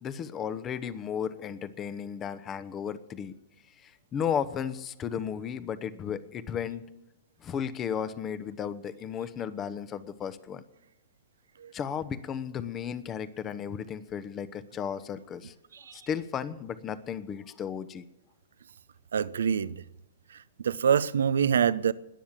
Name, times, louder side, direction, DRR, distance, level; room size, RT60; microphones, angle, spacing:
voice 1, 0.0-3.3 3.8-6.8 7.4-10.6 11.7-15.5 15.9-18.0, left 8 dB, 25° left, 1.0 m, -34 dB
voice 2, 19.1-19.8 20.6-21.9, right 7 dB, 80° right, 0.7 m, -25 dB
20.5 x 7.4 x 7.3 m
hypercardioid pair, 120°, 0 cm